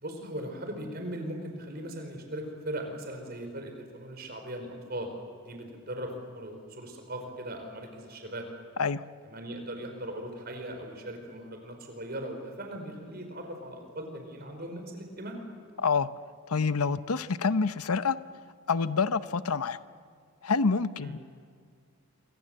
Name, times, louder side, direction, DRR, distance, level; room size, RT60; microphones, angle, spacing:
voice 1, 0.0-5.1 5.4-8.5 9.2-15.4 21.0-21.2, right 1 dB, 45° right, 5 dB, 4.7 m, -39 dB
voice 2, 15.8-16.1 16.5-18.2 18.7-19.8 20.4-21.2, left 5 dB, 85° left, 14 dB, 0.8 m, -27 dB
27.0 x 24.5 x 7.9 m, 2.2 s
head